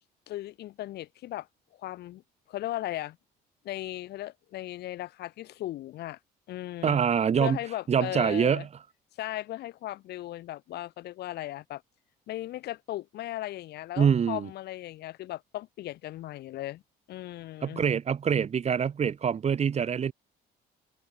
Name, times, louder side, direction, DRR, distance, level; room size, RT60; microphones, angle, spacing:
voice 1, 0.3-2.2 2.5-3.2 3.6-6.2 6.5-7.0 7.4-8.7 9.2-11.8 12.3-16.8 17.1-17.8, left 15 dB, 75° left, 7.6 m, -37 dB
voice 2, 6.8-7.6 7.9-8.7 14.0-14.5 17.6-20.1, right 7 dB, 40° right, 2.9 m, -25 dB
cardioid pair, 110°, 17 cm